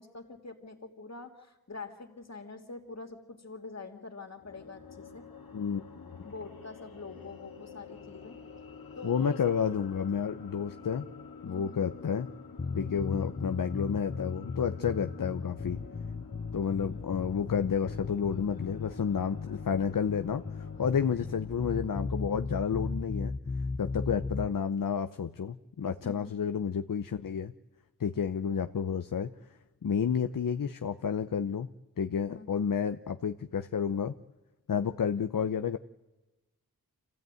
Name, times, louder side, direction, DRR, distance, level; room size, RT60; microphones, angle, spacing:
voice 1, 0.0-5.2 6.2-8.4 9.0-9.6 11.4-11.8 14.9-15.0 20.7-20.9 26.0-26.5 32.3-32.7, left 3 dB, 50° left, 4 dB, 3.1 m, -45 dB
sound 1, 4.4-21.6, left 5 dB, 85° left, 2.0 m, -48 dB
voice 2, 9.0-11.1 11.4-12.3 12.8-15.8 16.5-23.3 23.8-27.5 28.0-29.3 29.8-31.7 32.0-34.1 34.7-35.8, left 7 dB, 65° left, 10 dB, 0.8 m, -30 dB
sound 2, 12.6-24.5, left 4 dB, 30° left, 0.8 m, -37 dB
26.5 x 16.0 x 9.3 m, 1.1 s
cardioid pair, 50°, 35 cm